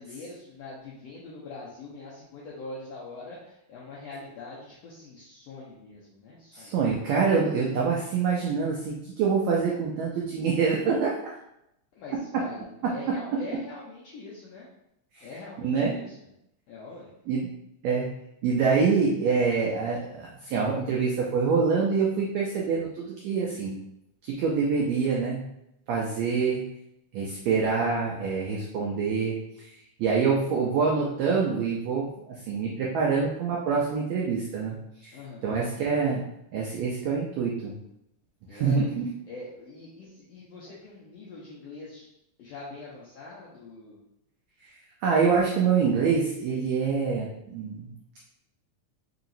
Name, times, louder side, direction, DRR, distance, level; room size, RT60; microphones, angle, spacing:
voice 1, 0.0-6.8 11.9-14.7 15.2-16.2 16.7-17.1 35.1-35.6 38.5-38.9 39.3-42.1 42.4-44.0, left 3 dB, 80° left, -6 dB, 1.4 m, -43 dB
voice 2, 6.5-11.4 15.1-15.3 15.6-16.0 17.3-17.5 17.8-18.1 18.4-23.8 24.2-25.5 25.9-26.6 27.1-29.7 30.0-34.8 35.0-35.2 35.4-36.2 36.5-37.7 38.5-39.1 45.0-48.0, right 5 dB, 85° right, -3 dB, 1.5 m, -26 dB
4.8 x 2.8 x 2.6 m, 0.82 s
omnidirectional pair, 3.7 m